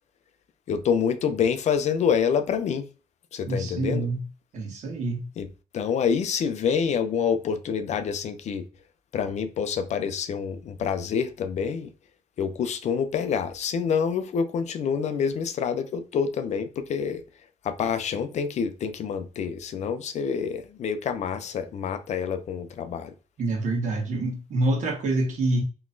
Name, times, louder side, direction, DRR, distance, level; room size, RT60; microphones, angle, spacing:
voice 1, 0.7-2.9 3.3-4.1 5.4-5.5 5.7-8.7 9.1-11.9 12.4-17.2 17.6-23.1, left 7 dB, 60° left, 0.5 m, -27 dB
voice 2, 3.5-4.2 4.5-5.3 23.4-25.6, right 2 dB, 65° right, 1.5 m, -26 dB
4.0 x 3.0 x 2.6 m
cardioid pair, 115°, 14 cm